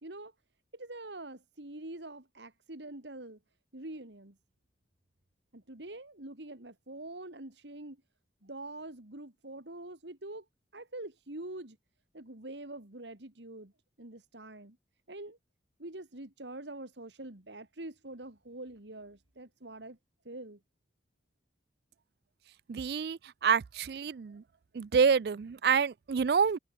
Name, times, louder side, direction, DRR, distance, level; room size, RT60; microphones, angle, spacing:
voice 1, 0.0-0.3 0.7-3.4 3.7-4.4 5.5-8.0 8.4-10.4 10.7-11.8 12.1-13.7 14.0-14.8 15.1-15.4 15.8-20.0 20.2-20.6, right 2 dB, 80° right, 2.7 m, -45 dB
voice 2, 22.7-24.4 24.7-26.6, right 6 dB, 60° right, 0.4 m, -27 dB
head